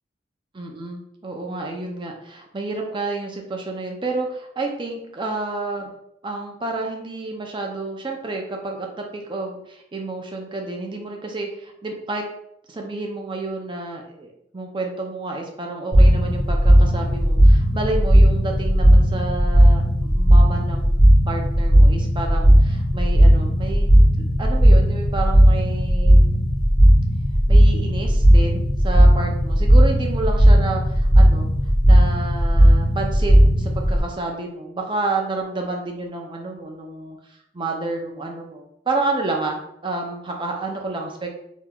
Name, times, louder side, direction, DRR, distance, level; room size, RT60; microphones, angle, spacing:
voice 1, 0.5-5.9 6.2-12.2 12.7-14.3 14.5-20.9 21.3-24.0 24.4-26.2 27.5-31.5 31.8-41.3, right 3 dB, 25° right, 1 dB, 0.5 m, -30 dB
sound 1, 15.9-34.0, equal, 40° left, 1.4 m, -15 dB
3.6 x 3.0 x 2.3 m, 0.76 s
head